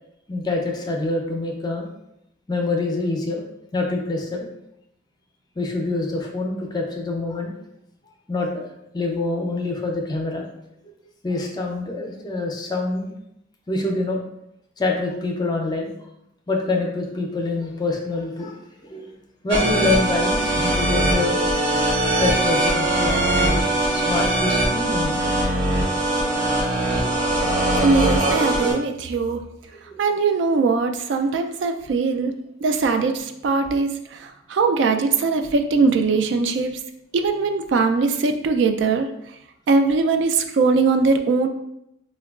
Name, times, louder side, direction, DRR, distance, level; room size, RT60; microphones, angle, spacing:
voice 1, 0.3-1.9 2.5-3.4 3.7-4.5 5.6-7.6 8.3-8.5 8.9-10.5 11.2-13.1 13.7-14.2 14.8-15.9 16.5-18.5 18.8-19.1 19.4-23.6 23.9-25.4 27.4-27.7 29.9-30.0, left 2 dB, 20° left, 1 dB, 0.4 m, -26 dB
sound 1, 19.5-28.7, right 1 dB, 90° right, 1.2 m, -21 dB
voice 2, 27.8-29.4 30.0-36.8 37.1-39.1 39.7-41.5, right 4 dB, 70° right, 7 dB, 0.3 m, -21 dB
4.4 x 2.2 x 2.3 m, 0.80 s
head